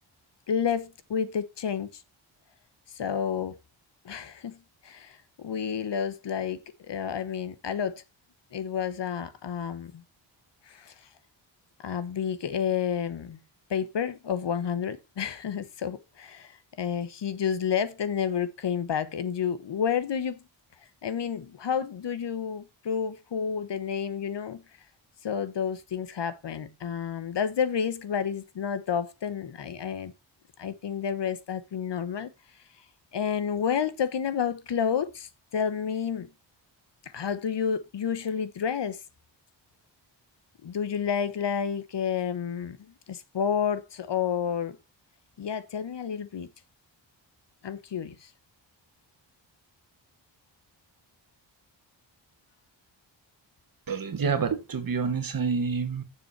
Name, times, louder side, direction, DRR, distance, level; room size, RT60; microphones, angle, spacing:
voice 1, 0.5-2.0 2.9-3.5 4.0-4.6 4.8-8.0 8.5-10.0 10.7-10.9 11.8-13.4 13.7-16.5 16.8-20.4 21.0-24.6 25.2-30.1 30.6-32.3 33.1-36.3 37.1-39.0 40.6-42.8 43.1-44.8 45.4-46.5 47.6-48.3, left 7 dB, 60° left, 1.1 m, -30 dB
voice 2, 53.9-56.0, right 5 dB, 45° right, 1.6 m, -28 dB
9.4 x 7.1 x 4.6 m
wide cardioid pair, 180°, 46 cm